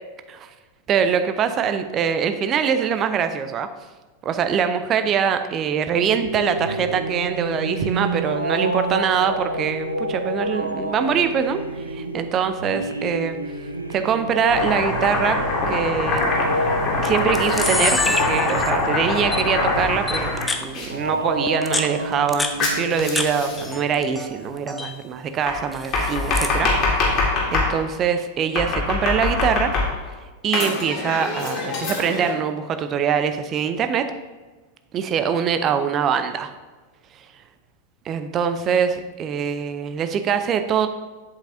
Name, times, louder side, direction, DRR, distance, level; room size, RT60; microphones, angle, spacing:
voice 1, 0.9-3.7 4.2-13.4 13.9-16.3 17.0-26.8 27.1-27.2 27.5-29.8 30.4-34.1 34.9-36.5 38.1-40.9, right 7 dB, 30° right, 9 dB, 0.5 m, -23 dB
sound 1, 6.0-24.6, right 1 dB, 85° right, 0.6 m, -30 dB
Domestic sounds home sounds, 14.5-20.9 22.6-23.7 25.5-27.7 28.6-30.1 30.5-32.3, left 3 dB, 35° left, 1.9 m, -23 dB
Camera, 16.2-16.4 17.0-17.1 17.3-18.9 19.3-19.4 20.1-20.6 21.5-23.3 23.6-24.3 24.6-24.9 25.7-26.6, left 2 dB, 10° left, 0.6 m, -26 dB
8.3 x 7.8 x 2.7 m, 1.3 s
figure-of-eight pair, 90°, 0 cm